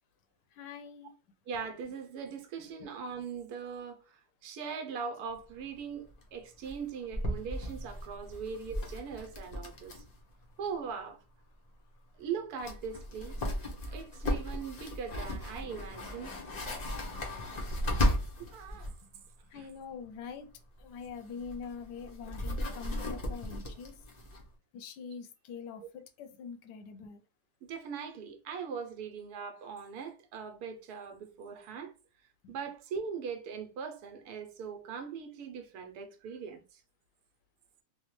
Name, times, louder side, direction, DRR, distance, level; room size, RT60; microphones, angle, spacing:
voice 1, 0.6-1.1 19.5-20.5 20.8-23.9 24.7-27.2 32.4-32.5, left 6 dB, 90° left, 1.2 m, -44 dB
voice 2, 1.5-10.0 10.6-11.2 12.2-13.5 13.9-16.3 18.5-18.9 19.5-19.7 23.7-23.8 27.7-31.9 32.5-36.8, right 6 dB, 75° right, 1.1 m, -40 dB
sound 1, 5.3-5.4 5.6-5.7 6.0-6.2 6.6-10.2 10.4-10.5 12.2-12.3 12.6-19.0 20.8-24.5, left 1 dB, 70° left, 0.4 m, -36 dB
3.3 x 2.1 x 3.0 m
omnidirectional pair, 1.7 m